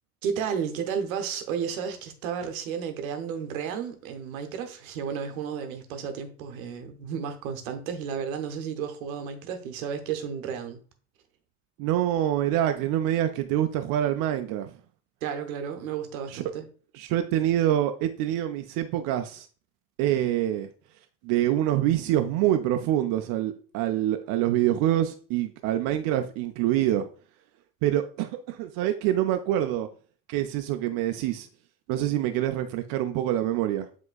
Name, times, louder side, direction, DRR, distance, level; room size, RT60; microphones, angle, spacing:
voice 1, 0.2-10.8 15.2-16.7, right 7 dB, 70° right, 0.9 m, -32 dB
voice 2, 11.8-14.7 16.3-16.4 16.9-19.5 20.0-20.7 21.2-27.1 27.8-29.9 30.3-31.5 31.9-33.9, right 12 dB, 50° right, 0.5 m, -26 dB
7.6 x 3.0 x 2.3 m
figure-of-eight pair, 60°, 43 cm